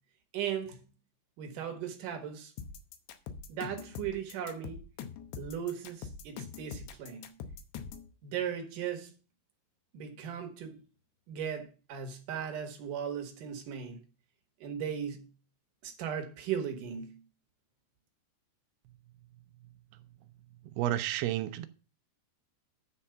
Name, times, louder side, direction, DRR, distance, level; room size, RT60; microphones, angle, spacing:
voice 1, 0.3-0.9 1.4-2.5 3.5-4.8 5.4-7.4 8.2-9.1 9.9-10.8 11.3-14.0 14.6-15.2 15.8-17.2, right 8 dB, 65° right, 2.2 m, -37 dB
sound 1, 2.6-8.1, left 6 dB, 75° left, 2.8 m, -43 dB
voice 2, 20.8-21.7, right 13 dB, 80° right, 2.4 m, -30 dB
9.9 x 4.2 x 6.9 m
omnidirectional pair, 5.1 m